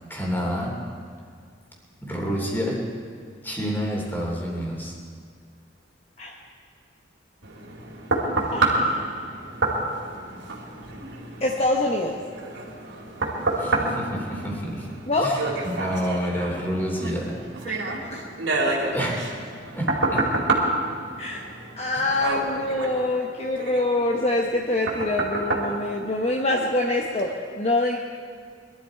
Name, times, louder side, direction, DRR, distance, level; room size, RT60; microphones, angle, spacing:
voice 1, 0.1-0.8 2.0-2.8 3.4-4.9 13.5-15.0 15.2-18.0 18.9-19.4 19.7-20.3 21.9-22.4, equal, 10° left, -2 dB, 3.0 m, -29 dB
sound 1, 7.4-26.7 27.2-27.3, right 2 dB, 85° right, 2.7 m, -28 dB
voice 2, 8.5-9.2 11.4-12.2 15.1-15.6 18.0-18.2 21.2-21.4 21.8-28.0, left 2 dB, 35° left, 0 dB, 1.0 m, -25 dB
21.5 x 12.5 x 4.6 m, 2.2 s
head